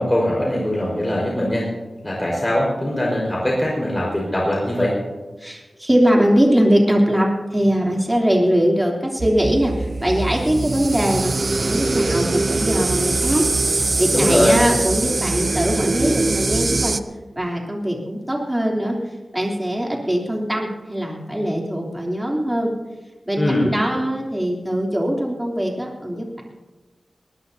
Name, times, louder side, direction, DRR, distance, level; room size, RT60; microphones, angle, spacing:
voice 1, 0.0-1.7 2.0-5.0 14.1-14.6 23.4-23.7, left 1 dB, 20° left, -4 dB, 4.9 m, -21 dB
voice 2, 5.4-17.0 17.3-19.0 19.3-22.7 23.3-26.4, equal, 15° right, -1 dB, 3.2 m, -21 dB
sound 1, 9.2-17.0, right 3 dB, 50° right, 0.6 m, -22 dB
21.0 x 19.5 x 2.8 m, 1.2 s
wide cardioid pair, 80°, 0 cm